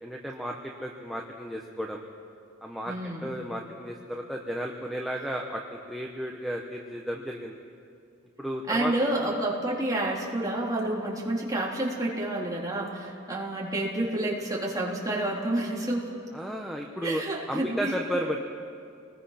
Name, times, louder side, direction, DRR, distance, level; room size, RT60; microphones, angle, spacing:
voice 1, 0.0-2.0 2.6-2.9 3.2-7.6 8.4-8.9 16.3-18.4, equal, ahead, 1 dB, 1.1 m, -33 dB
voice 2, 2.9-3.3 8.7-16.1 17.0-17.9, right 1 dB, 20° right, -4 dB, 3.6 m, -29 dB
28.0 x 20.0 x 5.9 m, 2.4 s
head